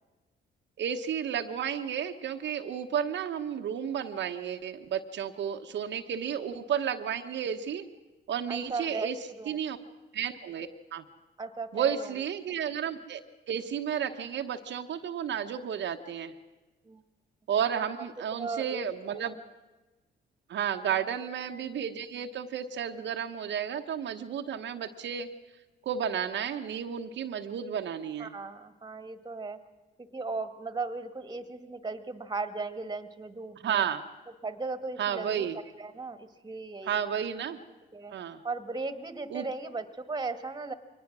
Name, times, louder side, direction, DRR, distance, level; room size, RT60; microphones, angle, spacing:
voice 1, 0.8-7.8 8.3-9.2 9.5-9.8 10.1-11.0 11.7-13.2 13.5-16.3 17.5-19.4 20.5-25.3 25.8-28.3 33.6-34.0 35.0-35.6 36.8-37.6 38.1-38.4 39.3-39.5, right 8 dB, 65° right, 4 dB, 1.1 m, -32 dB
voice 2, 8.5-9.1 9.4-9.6 11.4-12.1 16.8-17.0 18.4-18.9 19.2-19.4 20.9-21.0 28.2-29.6 30.1-33.9 34.4-35.5 35.8-37.0 37.9-38.1 38.4-40.7, right 3 dB, 20° right, 11 dB, 1.7 m, -36 dB
23.0 x 19.5 x 6.1 m, 1.1 s
cardioid pair, 90°, 20 cm